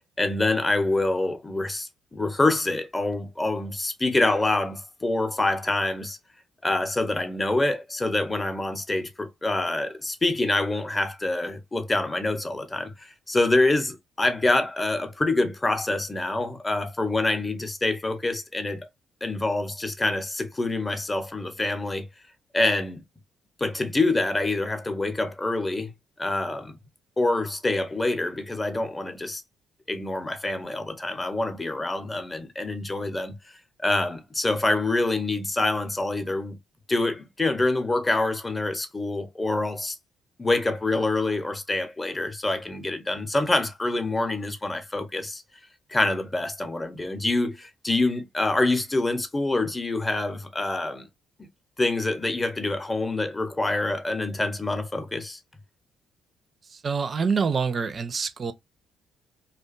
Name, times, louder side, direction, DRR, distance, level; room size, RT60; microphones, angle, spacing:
voice 1, 0.2-6.2 6.6-18.9 19.2-22.0 22.5-23.0 23.6-25.9 26.2-26.7 27.2-29.4 29.9-33.4 33.8-36.6 36.9-40.0 40.4-45.4 45.9-51.1 51.8-55.4, left 2 dB, 20° left, 0.6 m, -26 dB
voice 2, 56.7-58.5, right 5 dB, 45° right, 0.4 m, -26 dB
2.5 x 2.2 x 2.4 m
hypercardioid pair, 45°, 0 cm